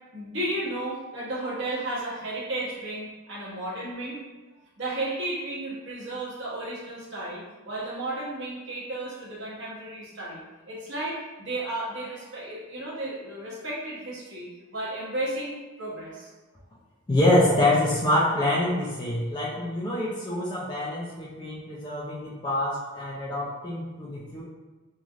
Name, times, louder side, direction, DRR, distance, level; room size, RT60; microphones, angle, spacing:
voice 1, 0.1-4.2 4.8-14.5 14.7-15.5 15.8-16.3, right 1 dB, 55° right, -6 dB, 0.9 m, -33 dB
voice 2, 17.1-24.4, left 1 dB, 20° left, -7 dB, 0.3 m, -25 dB
3.1 x 2.4 x 2.4 m, 1.2 s
head